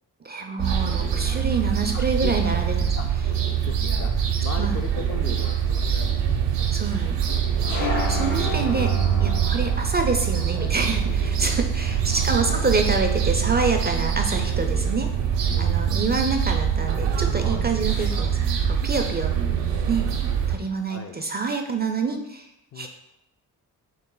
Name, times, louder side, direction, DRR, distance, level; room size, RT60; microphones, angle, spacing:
voice 1, 0.2-2.9 4.6-4.8 6.7-7.2 7.8-8.9 9.2-15.1 15.6-19.3 19.9-20.1 20.5-22.5 22.8-22.9, right 4 dB, 25° right, 4 dB, 0.4 m, -27 dB
sound 1, 0.6-20.6, right 8 dB, 80° right, 0.6 m, -24 dB
voice 2, 1.9-2.6 2.9-3.1 3.5-7.1 7.6-7.9 11.9-12.7 15.5-15.8 19.4-20.0 20.9-21.2 22.7-22.9, left 5 dB, 35° left, 5 dB, 0.4 m, -39 dB
sound 2, 7.6-18.7, left 4 dB, 80° left, 0.9 m, -38 dB
3.9 x 2.1 x 3.8 m, 0.86 s
supercardioid pair, 55°, 42 cm